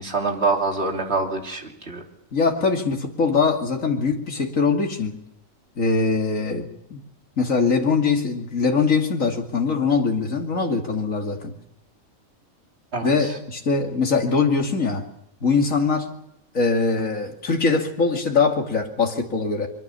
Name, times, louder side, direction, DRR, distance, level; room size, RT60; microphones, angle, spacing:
voice 1, 0.0-2.0 12.9-13.4, right 3 dB, 50° right, 1 dB, 3.3 m, -25 dB
voice 2, 2.3-5.2 5.8-7.0 7.4-11.5 13.0-15.1 15.4-16.1 16.5-19.7, left 4 dB, 75° left, 2 dB, 3.0 m, -22 dB
23.5 x 23.5 x 7.0 m, 0.80 s
omnidirectional pair, 1.4 m